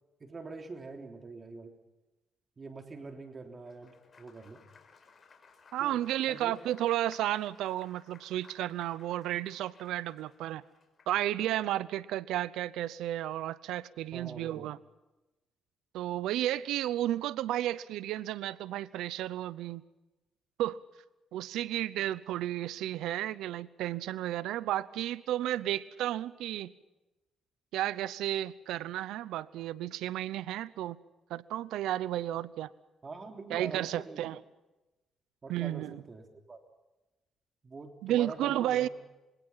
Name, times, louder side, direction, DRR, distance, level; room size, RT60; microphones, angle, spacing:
voice 1, 0.2-1.7 2.6-4.6 5.8-6.0 6.3-6.5 14.1-14.7 33.0-34.3 35.4-36.6 37.6-38.9, right 3 dB, 35° right, 5 dB, 3.3 m, -44 dB
Applause, 3.5-11.3, left 5 dB, 40° left, 5.3 m, -59 dB
voice 2, 5.7-10.6 11.1-14.8 15.9-19.8 20.6-20.8 21.3-26.7 27.7-31.0 31.3-32.7 33.5-34.4 35.5-36.0 38.0-38.9, right 13 dB, 90° right, 18 dB, 0.7 m, -32 dB
26.5 x 23.5 x 5.7 m, 1.1 s
cardioid pair, 90°, 0 cm